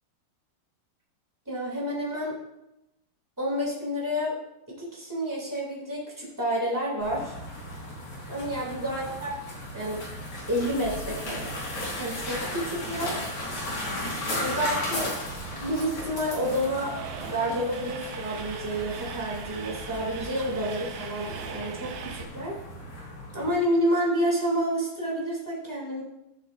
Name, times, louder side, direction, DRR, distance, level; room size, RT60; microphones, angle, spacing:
voice 1, 1.4-2.3 3.4-4.3 4.8-7.3 8.3-9.3 9.7-10.0 10.5-11.5 12.0-13.2 14.4-15.2 15.5-16.9 17.2-22.6 23.3-26.0, equal, 10° right, -5 dB, 0.8 m, -29 dB
sound 1, 7.0-23.5, left 1 dB, 40° left, 5.2 m, -36 dB
Train, 8.9-22.2, right 6 dB, 75° right, 2.2 m, -43 dB
16.5 x 7.5 x 2.6 m, 0.89 s
omnidirectional pair, 5.7 m